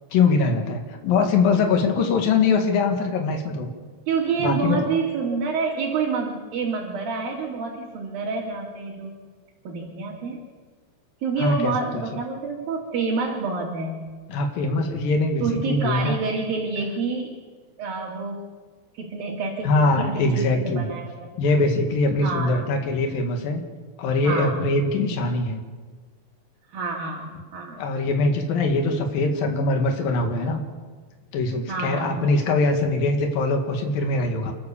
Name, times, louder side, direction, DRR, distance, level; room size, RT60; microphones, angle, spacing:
voice 1, 0.1-3.7 4.4-4.9 11.4-12.0 14.3-16.2 19.6-20.9 21.4-23.6 24.0-25.6 27.8-30.6 31.3-34.5, left 3 dB, 75° left, 4 dB, 3.7 m, -22 dB
voice 2, 4.1-9.1 9.7-10.4 11.2-14.0 15.4-17.4 17.8-18.4 19.0-21.3 22.2-22.5 24.2-24.6 24.9-25.1 26.7-28.4 31.7-32.4, right 4 dB, 80° right, -2 dB, 4.1 m, -28 dB
29.0 x 13.0 x 7.0 m, 1.4 s
omnidirectional pair, 4.1 m